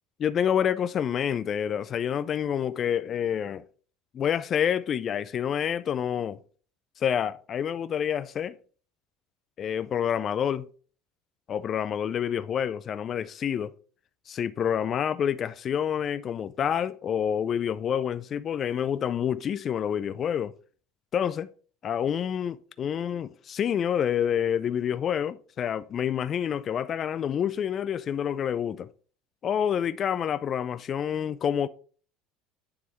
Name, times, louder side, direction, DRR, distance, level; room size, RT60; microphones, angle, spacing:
voice 1, 0.2-3.6 4.1-6.4 7.0-8.6 9.6-10.7 11.5-13.7 14.3-20.5 21.1-21.5 21.8-28.9 29.4-31.7, left 8 dB, 35° left, 0.3 m, -28 dB
9.7 x 3.4 x 3.1 m
cardioid pair, 140°, 0 cm